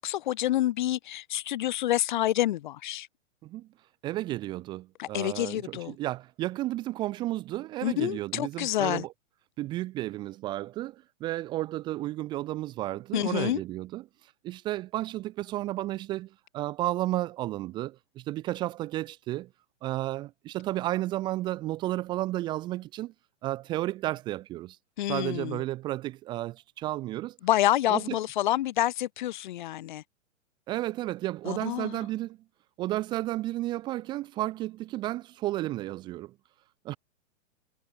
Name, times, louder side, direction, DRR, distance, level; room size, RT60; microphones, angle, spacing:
voice 1, 0.0-3.1 5.0-6.0 7.8-9.0 13.1-13.6 25.0-25.6 27.4-30.0 31.4-32.0, left 14 dB, 40° left, 1.0 m, -28 dB
voice 2, 4.0-9.1 9.6-14.0 14.4-19.5 19.8-23.1 23.4-24.8 25.1-27.4 27.9-28.2 30.7-32.4 32.8-36.3 36.8-37.0, right 16 dB, 10° right, 0.8 m, -32 dB
hypercardioid pair, 170°, 39 cm